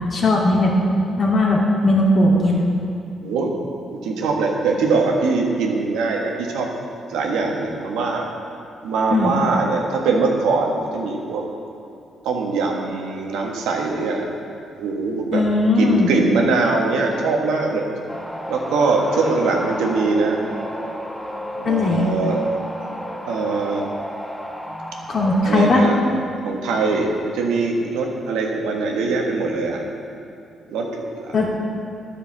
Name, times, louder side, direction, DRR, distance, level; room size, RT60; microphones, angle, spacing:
voice 1, 0.1-0.7 1.2-2.6 9.1-9.3 15.3-16.1 21.6-22.1 25.1-25.9 31.3-31.5, left 2 dB, 55° left, -3 dB, 2.8 m, -18 dB
voice 2, 4.0-6.7 7.1-8.3 8.8-11.4 12.2-14.2 14.8-15.4 15.8-17.8 18.5-20.4 21.6-22.4 22.8-22.9 23.3-23.9 25.4-26.0 26.4-29.8 30.7-31.5, right 3 dB, 85° right, 0 dB, 1.5 m, -22 dB
sound 1, 18.1-25.7, equal, 20° left, 2.6 m, -32 dB
10.5 x 6.7 x 7.2 m, 2.6 s
supercardioid pair, 55°, 0 cm